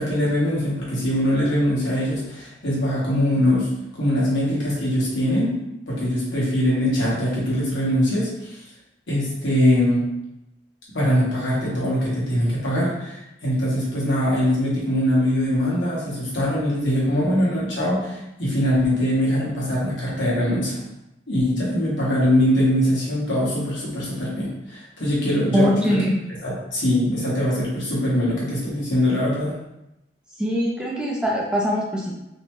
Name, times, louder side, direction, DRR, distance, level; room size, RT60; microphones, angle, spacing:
voice 1, 0.0-5.6 5.9-8.6 9.1-10.1 10.9-20.8 21.3-26.0 26.4-29.5, equal, 85° left, -6 dB, 1.1 m, -22 dB
voice 2, 25.5-26.2 30.4-32.1, equal, 5° right, -4 dB, 0.4 m, -22 dB
2.7 x 2.1 x 2.9 m, 0.89 s
head